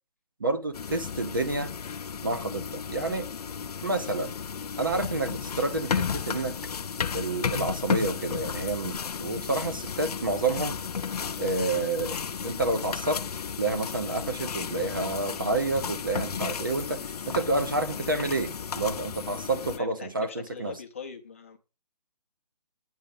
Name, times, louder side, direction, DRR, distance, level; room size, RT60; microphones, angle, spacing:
voice 1, 0.4-1.7 2.2-3.3 3.8-4.3 4.8-6.6 7.1-10.8 11.4-12.2 12.4-13.2 13.6-20.8, right 2 dB, 30° right, 0.6 m, -29 dB
sound 1, 0.7-19.8, left 6 dB, 65° left, 0.6 m, -34 dB
voice 2, 19.8-21.6, left 5 dB, 20° left, 0.7 m, -42 dB
9.0 x 5.6 x 6.9 m
hypercardioid pair, 180°, 21 cm